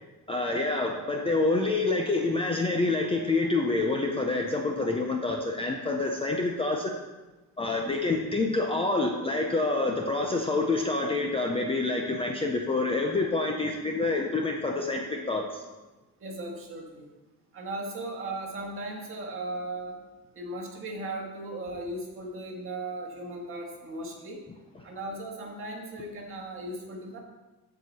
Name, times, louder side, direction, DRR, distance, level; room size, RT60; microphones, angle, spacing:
voice 1, 0.3-6.9 7.6-15.6, left 3 dB, 15° left, 1 dB, 0.5 m, -27 dB
voice 2, 16.2-17.1 17.5-20.0 20.3-24.4 24.8-27.2, right 2 dB, 35° right, 0 dB, 1.6 m, -37 dB
14.0 x 4.8 x 4.1 m, 1.2 s
cardioid pair, 170°, 36 cm